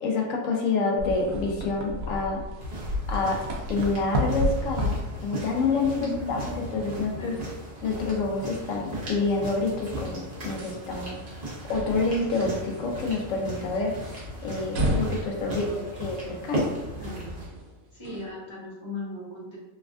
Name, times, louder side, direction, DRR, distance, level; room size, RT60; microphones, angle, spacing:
voice 1, 0.0-2.4 3.1-3.4 3.7-7.4 7.8-15.7 16.0-16.7, left 3 dB, 70° left, 0 dB, 1.0 m, -28 dB
sound 1, 1.0-18.3, left 1 dB, 85° right, 1.0 m, -34 dB
sound 2, 2.6-17.4, right 1 dB, 35° right, 0.8 m, -37 dB
voice 2, 5.9-6.5 6.9-7.5 15.4-15.9 17.0-17.3 17.9-19.6, left 1 dB, 25° left, -7 dB, 0.8 m, -38 dB
3.2 x 2.3 x 2.3 m, 1.0 s
omnidirectional pair, 1.4 m